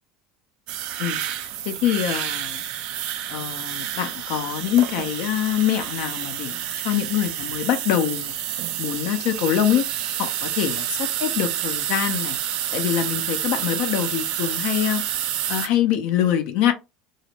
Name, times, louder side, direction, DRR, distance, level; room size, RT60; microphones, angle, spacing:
sound 1, 0.7-15.7, right 11 dB, 45° right, 0.3 m, -29 dB
voice 1, 1.0-2.6 3.3-8.3 8.8-9.8 10.2-12.4 12.7-15.0 15.5-16.7, left 10 dB, 50° left, 0.5 m, -24 dB
2.0 x 2.0 x 3.1 m
figure-of-eight pair, 70°, 2 cm